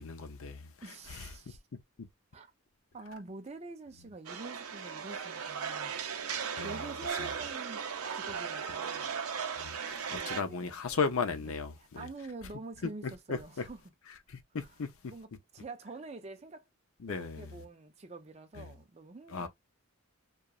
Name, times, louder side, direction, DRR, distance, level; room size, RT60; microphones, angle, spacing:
voice 1, 0.0-0.7 1.1-1.3 6.6-6.8 7.2-7.3 9.6-12.1 12.8-13.7 14.3-15.1 17.0-17.5 18.6-18.7 19.3-19.5, left 5 dB, 70° left, 0.6 m, -36 dB
voice 2, 0.8-1.6 2.3-2.5 2.9-6.1 6.6-9.2 10.1-11.0 11.5-11.6 12.0-13.8 15.0-16.7 17.1-19.5, right 3 dB, 30° right, 0.5 m, -47 dB
sound 1, 4.3-10.4, right 6 dB, 80° right, 0.6 m, -37 dB
2.9 x 2.3 x 2.4 m
head